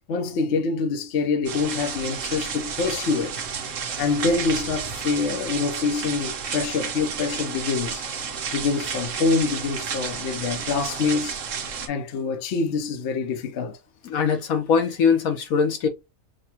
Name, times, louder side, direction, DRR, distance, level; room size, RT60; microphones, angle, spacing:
voice 1, 0.1-3.4 4.0-8.1 8.5-11.4 11.9-13.8, left 4 dB, 60° left, 1.0 m, -25 dB
sound 1, 1.5-11.9, right 6 dB, 65° right, 1.2 m, -31 dB
voice 2, 14.0-15.9, left 6 dB, 90° left, 1.4 m, -21 dB
6.5 x 2.4 x 2.8 m
omnidirectional pair, 1.4 m